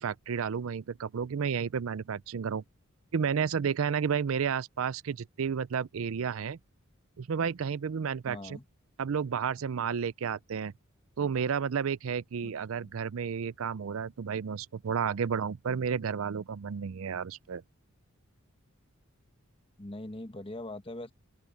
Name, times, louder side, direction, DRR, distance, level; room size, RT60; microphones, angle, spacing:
voice 1, 0.0-2.6 3.1-6.6 7.2-8.6 9.0-10.7 11.2-17.6, right 6 dB, 75° right, 0.5 m, -31 dB
voice 2, 8.3-8.6 12.4-12.5 12.8-13.0 19.8-21.1, left 1 dB, 25° left, 1.2 m, -41 dB
open air
head